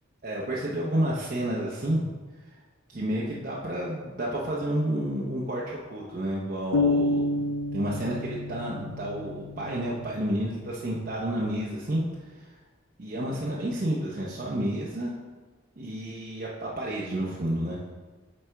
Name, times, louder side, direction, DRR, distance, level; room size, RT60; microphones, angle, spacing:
voice 1, 0.2-2.0 2.9-7.5 7.7-12.0 12.3-12.5 13.0-15.1 15.8-17.8, right 1 dB, 45° right, -5 dB, 0.7 m, -30 dB
sound 1, 6.7-10.5, left 2 dB, 80° left, 0.5 m, -29 dB
8.1 x 4.3 x 3.4 m, 1.3 s
head